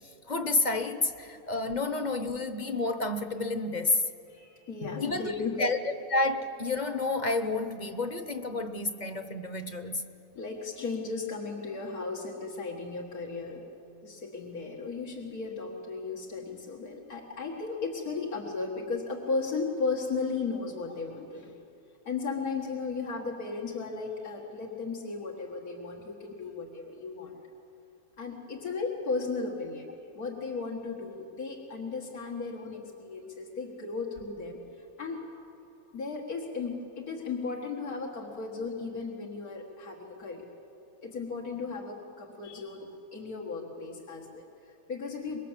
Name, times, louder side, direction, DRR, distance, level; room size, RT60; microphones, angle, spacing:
voice 1, 0.3-4.0 5.0-5.3 5.6-10.1, left 2 dB, 35° left, 9 dB, 0.9 m, -30 dB
voice 2, 4.3-5.6 10.4-13.6 14.0-21.6 22.1-27.3 28.2-35.3 35.9-40.5 41.0-45.4, left 4 dB, 85° left, -1 dB, 2.3 m, -35 dB
25.5 x 21.5 x 7.4 m, 2.8 s
omnidirectional pair, 1.5 m